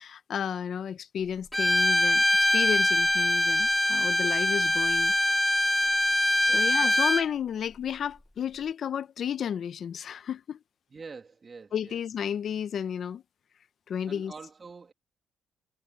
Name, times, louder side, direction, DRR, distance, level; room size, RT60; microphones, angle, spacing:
voice 1, 0.0-5.1 6.4-10.6 11.7-13.2 13.9-14.3, left 8 dB, 60° left, 0.7 m, -32 dB
Bowed string instrument, 1.5-7.3, left 1 dB, 5° left, 0.8 m, -23 dB
voice 2, 6.5-7.0 10.9-12.0 14.1-14.9, right 4 dB, 35° right, 2.5 m, -46 dB
cardioid pair, 90°, 0 cm